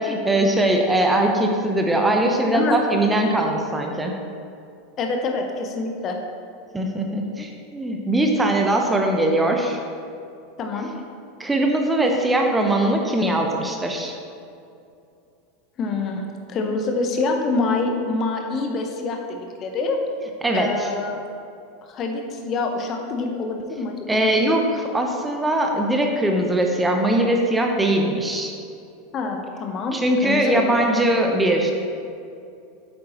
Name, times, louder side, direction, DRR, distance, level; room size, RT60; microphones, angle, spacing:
voice 1, 0.0-4.1 6.7-9.8 11.4-14.1 20.4-20.9 24.1-28.5 29.9-31.7, right 1 dB, 10° right, 2 dB, 0.9 m, -21 dB
voice 2, 5.0-6.2 10.6-10.9 15.8-20.0 20.5-21.2 21.8-24.2 29.1-30.9, left 3 dB, 35° left, 3 dB, 0.9 m, -26 dB
8.5 x 7.8 x 3.1 m, 2.5 s
figure-of-eight pair, 80°, 0 cm